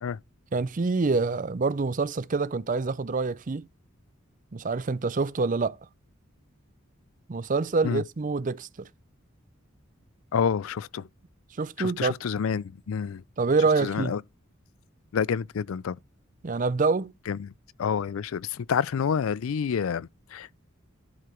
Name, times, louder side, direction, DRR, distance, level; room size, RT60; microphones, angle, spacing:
voice 1, 0.5-3.7 4.5-5.8 7.3-8.9 11.6-12.1 13.4-14.1 16.4-17.1, right 4 dB, 40° right, 0.5 m, -26 dB
voice 2, 10.3-11.1 11.8-13.2 13.8-14.2 15.1-16.0 17.3-17.5 17.8-20.6, left 7 dB, 80° left, 0.4 m, -28 dB
11.5 x 4.9 x 4.4 m
head